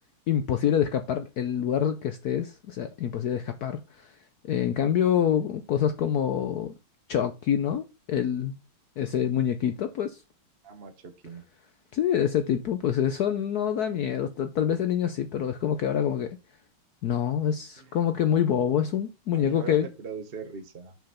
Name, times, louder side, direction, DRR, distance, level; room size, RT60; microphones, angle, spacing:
voice 1, 0.3-4.1 4.4-6.7 7.1-8.5 9.0-10.2 11.9-16.4 17.0-19.9, left 9 dB, 70° left, 0.9 m, -26 dB
voice 2, 10.6-11.4 17.8-17.9 19.3-21.0, right 5 dB, 50° right, 0.7 m, -40 dB
5.7 x 5.3 x 5.5 m
omnidirectional pair, 2.3 m